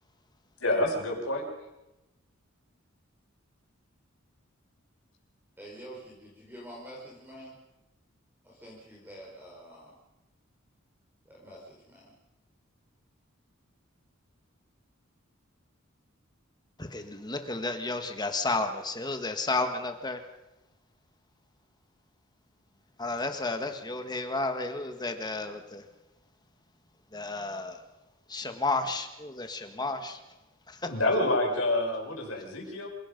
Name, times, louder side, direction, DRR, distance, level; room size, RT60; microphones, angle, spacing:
voice 1, 0.6-1.4 30.9-32.9, left 1 dB, 70° left, 0 dB, 5.9 m, -27 dB
voice 2, 5.6-7.6 8.4-9.9 11.2-12.1, right 1 dB, 10° right, -4 dB, 5.0 m, -47 dB
voice 3, 16.8-20.2 23.0-25.8 27.1-27.8 28.3-30.2 30.7-30.9, left 3 dB, 20° left, 6 dB, 1.8 m, -32 dB
27.0 x 18.0 x 5.4 m, 0.96 s
head